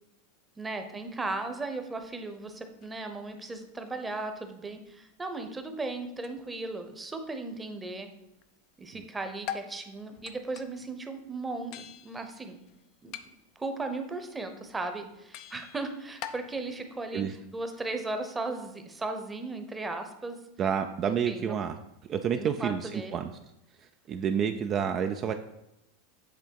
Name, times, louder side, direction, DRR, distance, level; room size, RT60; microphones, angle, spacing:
voice 1, 0.6-8.1 8.8-12.6 13.0-13.1 13.6-20.4 21.1-21.5 22.3-23.2, right 3 dB, 15° right, 7 dB, 0.9 m, -36 dB
sound 1, 0.7-8.5 8.8-17.9, left 10 dB, 50° left, 0.5 m, -48 dB
voice 2, 20.6-21.8 22.1-23.3 24.1-25.3, right 8 dB, 35° right, 7 dB, 0.4 m, -29 dB
8.1 x 3.4 x 4.6 m, 0.86 s
hypercardioid pair, 90°, 0 cm